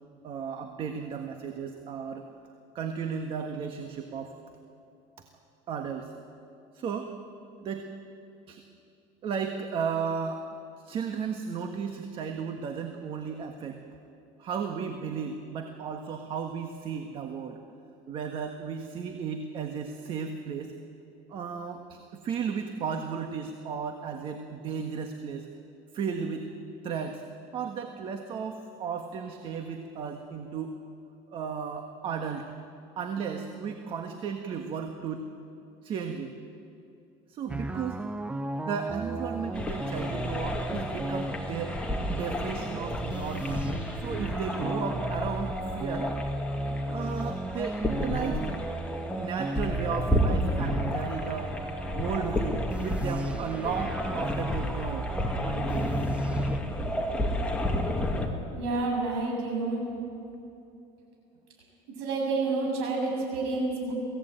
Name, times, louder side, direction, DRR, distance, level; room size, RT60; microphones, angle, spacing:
voice 1, 0.2-2.2 2.7-4.3 5.7-6.1 6.7-7.1 7.6-7.9 8.5-8.6 9.2-10.5 10.8-13.8 14.4-17.6 18.1-20.7 21.3-25.5 25.9-26.5 26.8-27.2 27.5-30.7 31.3-32.5 33.0-35.3 35.8-36.3 37.3-38.0 38.6-41.8 42.1-43.6 44.0-46.1 46.9-48.6 49.1-51.5 51.9-55.1 55.4-55.8, right 6 dB, 45° right, 5 dB, 1.5 m, -34 dB
sound 1, 37.5-56.6, right 1 dB, 10° right, 0.7 m, -34 dB
sound 2, 39.5-58.3, left 1 dB, 10° left, 2.3 m, -32 dB
voice 2, 58.6-59.9 62.0-63.9, right 3 dB, 85° right, 0 dB, 7.6 m, -29 dB
23.0 x 16.5 x 9.0 m, 2.7 s
cardioid pair, 135°, 13 cm